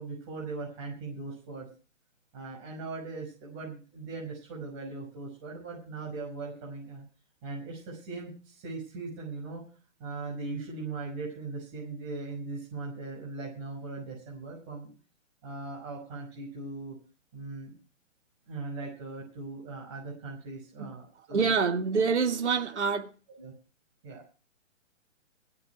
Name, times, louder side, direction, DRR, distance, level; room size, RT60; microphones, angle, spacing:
voice 1, 0.0-1.7 2.3-7.0 7.4-9.6 10.0-14.9 15.4-17.0 17.3-17.7 18.5-21.5 23.4-23.5 24.0-24.2, right 3 dB, 25° right, 5.8 m, -39 dB
voice 2, 21.3-23.1, right 5 dB, 60° right, 2.2 m, -26 dB
16.0 x 5.8 x 9.6 m
hypercardioid pair, 175°, 39 cm